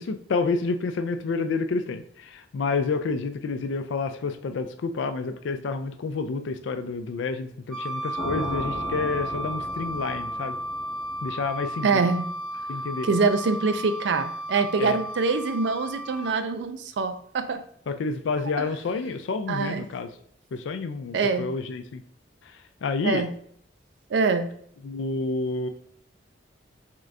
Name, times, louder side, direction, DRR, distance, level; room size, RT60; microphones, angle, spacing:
voice 1, 0.0-10.6 11.2-12.0 12.7-13.1 14.8-15.0 17.9-20.1 20.5-22.0 22.4-23.3 24.8-25.7, left 4 dB, 85° left, 9 dB, 0.4 m, -29 dB
Wind instrument woodwind instrument, 7.7-16.4, right 1 dB, 5° left, 0.7 m, -34 dB
sound 1, 8.2-12.2, equal, 50° left, 0.8 m, -37 dB
voice 2, 11.8-12.2 13.0-17.6 19.5-19.9 21.1-21.5 23.0-23.3 24.1-24.5, right 4 dB, 70° right, 9 dB, 0.4 m, -24 dB
3.7 x 2.5 x 3.2 m, 0.65 s
head